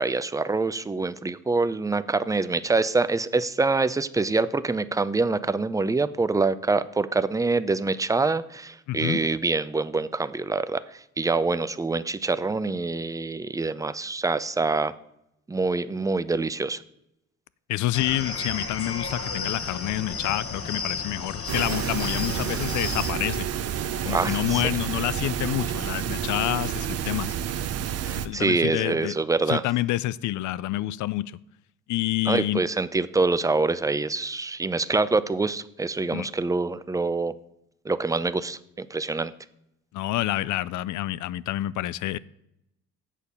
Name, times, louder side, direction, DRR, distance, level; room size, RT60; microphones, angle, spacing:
voice 1, 0.0-14.9 15.5-16.8 24.1-24.6 28.0-29.6 32.3-37.3 37.8-39.3, right 3 dB, 10° right, 14 dB, 0.5 m, -25 dB
voice 2, 8.9-9.2 17.7-23.5 24.0-27.3 28.2-29.2 29.5-31.4 31.9-32.6 36.1-36.3 39.9-42.2, left 15 dB, 75° left, 20 dB, 0.5 m, -28 dB
sound 1, 17.9-23.1, left 4 dB, 50° left, 1.2 m, -33 dB
sound 2, 21.5-28.3, right 9 dB, 55° right, 0.7 m, -29 dB
8.3 x 6.6 x 5.5 m, 0.80 s
cardioid pair, 90°, 30 cm